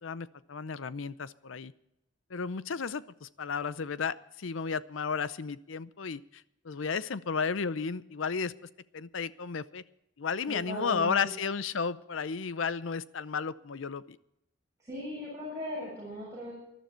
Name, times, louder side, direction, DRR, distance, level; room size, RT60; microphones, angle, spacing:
voice 1, 0.0-1.7 2.3-8.5 8.9-9.8 10.2-14.2, left 5 dB, 80° left, 16 dB, 0.6 m, -33 dB
voice 2, 10.5-11.3 14.8-16.5, left 1 dB, 15° right, -8 dB, 7.5 m, -38 dB
19.5 x 12.0 x 4.5 m, 0.83 s
head